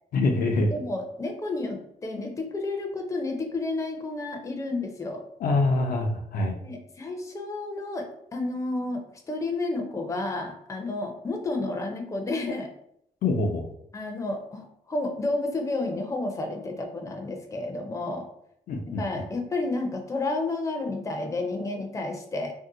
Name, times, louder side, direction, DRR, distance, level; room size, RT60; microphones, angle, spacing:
voice 1, 0.1-0.7 5.4-6.6 13.2-13.7 18.7-19.0, left 2 dB, 75° left, 3 dB, 0.5 m, -24 dB
voice 2, 0.7-5.2 6.5-9.0 9.3-12.7 13.9-18.3 19.0-22.5, left 2 dB, 20° left, 3 dB, 0.5 m, -31 dB
2.7 x 2.0 x 3.7 m, 0.74 s
cardioid pair, 100°, 15 cm